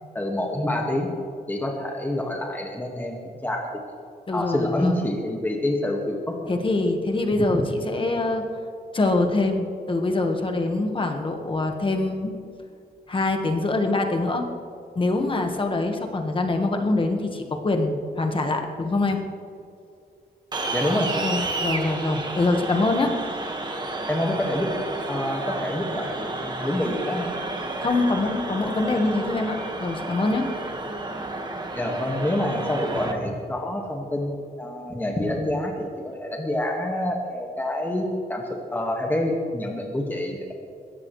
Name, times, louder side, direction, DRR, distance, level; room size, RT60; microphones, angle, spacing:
voice 1, 0.2-1.1 1.5-3.7 4.3-6.4 7.5-7.7 20.7-21.3 24.1-24.7 25.1-27.3 31.8-40.5, left 1 dB, 10° left, 0 dB, 1.7 m, -27 dB
voice 2, 4.3-5.0 6.5-8.4 8.9-12.3 13.1-14.5 14.9-19.2 21.2-23.1 27.8-30.5, left 2 dB, 30° left, 4 dB, 1.4 m, -24 dB
sound 1, 20.5-33.1, right 2 dB, 25° right, 1.5 m, -31 dB
21.0 x 17.0 x 3.2 m, 2.4 s
wide cardioid pair, 150°, 16 cm